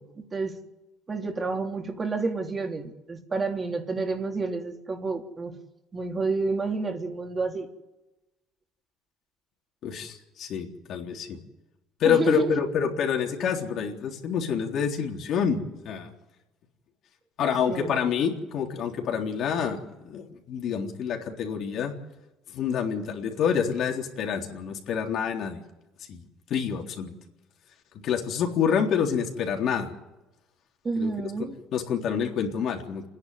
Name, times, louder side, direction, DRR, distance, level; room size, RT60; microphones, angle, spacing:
voice 1, 1.1-5.5 5.9-7.7 12.0-12.6 17.7-18.0 30.8-31.6, right 4 dB, 30° right, 3 dB, 3.2 m, -29 dB
voice 2, 9.8-11.4 12.0-15.6 15.9-16.1 17.4-21.9 22.5-25.6 26.1-27.1 28.0-29.9 31.0-31.1 31.7-33.1, left 7 dB, 60° left, 2 dB, 3.7 m, -27 dB
27.5 x 10.5 x 9.6 m, 1.0 s
supercardioid pair, 85°, 0 cm